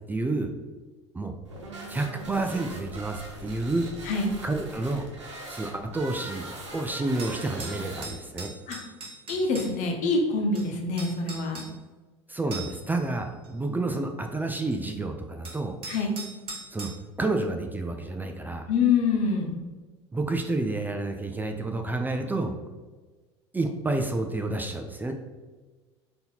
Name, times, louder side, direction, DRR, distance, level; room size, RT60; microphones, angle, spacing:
voice 1, 0.1-0.5 1.1-1.3 1.9-3.9 4.4-5.1 5.5-8.5 12.3-15.7 16.7-16.9 17.2-18.7 20.1-22.5 23.5-25.1, right 2 dB, 10° right, 4 dB, 0.4 m, -29 dB
sound 1, 1.4-8.4, right 1 dB, 90° right, 0.9 m, -41 dB
voice 2, 4.0-4.4 8.7-8.8 9.3-11.7 15.9-16.2 18.7-19.6, left 4 dB, 55° left, 2 dB, 1.0 m, -25 dB
sound 2, 7.2-9.7 10.5-10.6 11.0-11.7 12.5-12.9 13.4-13.5 14.7-14.8 15.4-16.9, right 3 dB, 40° right, 1.4 m, -40 dB
3.9 x 2.9 x 3.9 m, 1.3 s
hypercardioid pair, 75°, 15 cm